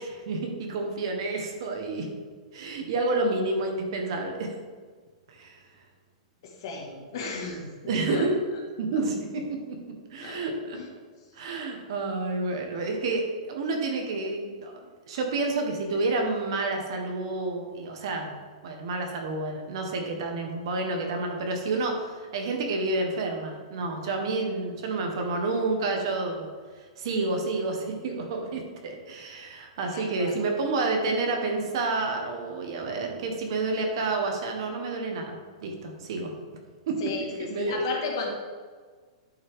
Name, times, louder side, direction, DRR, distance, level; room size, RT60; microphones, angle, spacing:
voice 1, 0.0-2.1 2.5-4.5 5.3-5.6 7.9-8.3 8.8-9.4 10.1-10.8 11.3-18.3 18.6-26.5 27.0-36.3 36.9-37.8, right 3 dB, 50° right, 3 dB, 1.5 m, -29 dB
voice 2, 6.4-8.3 10.2-10.4 10.7-10.9 29.9-30.3 37.0-38.3, left 4 dB, 45° left, 0 dB, 1.9 m, -34 dB
10.5 x 5.9 x 3.8 m, 1.5 s
supercardioid pair, 170°, 3 cm